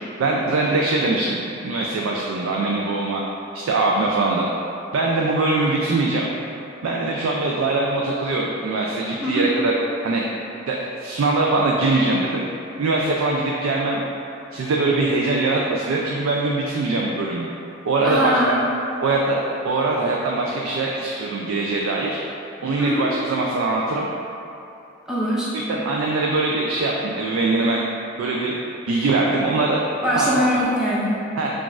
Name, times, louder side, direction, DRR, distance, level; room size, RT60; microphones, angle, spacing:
voice 1, 0.2-3.2 3.5-4.5 4.9-6.3 6.8-9.7 10.0-10.2 10.7-12.4 12.8-14.0 14.5-17.5 17.8-18.5 19.0-22.2 22.6-24.1 25.5-27.8 28.2-28.6 28.9-29.8 30.1-30.5 31.4-31.5, right 2 dB, 80° right, -2 dB, 0.3 m, -22 dB
voice 2, 9.2-9.6 18.0-18.6 22.8-23.1 25.1-25.6 30.0-31.3, equal, 5° right, -9 dB, 0.4 m, -22 dB
5.8 x 2.4 x 2.4 m, 2.8 s
head